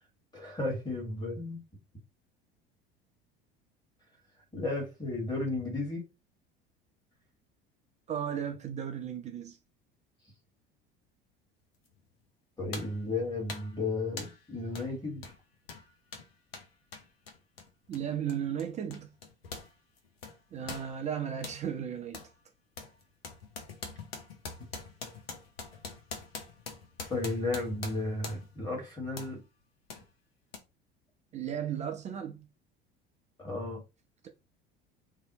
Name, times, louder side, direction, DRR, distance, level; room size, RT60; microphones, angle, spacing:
voice 1, 0.3-1.6 4.5-6.0 12.6-15.2 27.1-29.4 33.4-33.8, left 2 dB, 15° left, 1.3 m, -34 dB
voice 2, 8.1-9.6 17.9-19.1 20.5-22.3 31.3-32.5, right 9 dB, 25° right, 0.4 m, -35 dB
sound 1, 11.9-12.0 12.7-13.0 13.5-13.8 14.2-14.4 14.7-14.9 15.2-19.7 20.0-21.6 22.1-22.3 22.8-28.6 29.2-29.4 29.9-30.0 30.5-30.6, left 4 dB, 80° left, 0.6 m, -44 dB
2.7 x 2.0 x 2.6 m
figure-of-eight pair, 70°, 30 cm